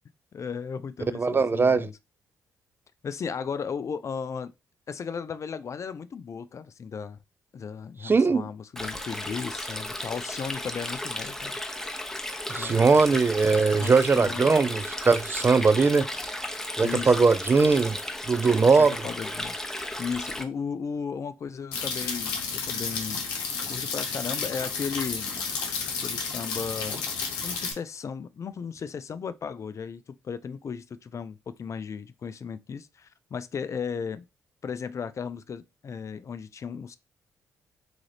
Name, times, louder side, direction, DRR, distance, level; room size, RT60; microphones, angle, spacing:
voice 1, 0.3-1.9 3.0-4.5 4.9-7.2 7.5-11.5 12.5-13.2 13.8-14.5 16.8-17.2 18.7-19.6 20.0-23.3 23.7-25.3 26.0-27.0 27.4-34.2 34.6-37.0, left 6 dB, 45° left, 0.4 m, -35 dB
voice 2, 1.1-1.9 8.0-8.4 12.5-16.1 16.8-18.0 18.3-19.0, right 4 dB, 30° right, 0.4 m, -20 dB
Stream, 8.8-20.4, left 1 dB, 5° left, 0.8 m, -34 dB
sound 1, 21.7-27.7, left 5 dB, 90° left, 0.8 m, -31 dB
3.9 x 2.5 x 3.2 m
supercardioid pair, 50°, 7 cm